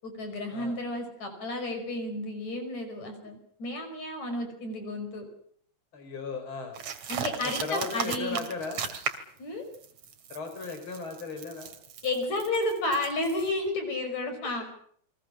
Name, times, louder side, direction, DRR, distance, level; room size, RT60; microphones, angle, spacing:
voice 1, 0.0-5.3 7.1-8.4 9.4-9.6 12.0-14.6, left 2 dB, 70° left, 6 dB, 6.8 m, -32 dB
voice 2, 5.9-6.7 7.4-8.8 10.3-11.7, left 4 dB, 45° left, 6 dB, 5.4 m, -36 dB
sound 1, 6.7-9.4 9.7-13.5, right 7 dB, 70° right, 3.4 m, -37 dB
29.5 x 23.0 x 6.3 m, 0.62 s
omnidirectional pair, 3.3 m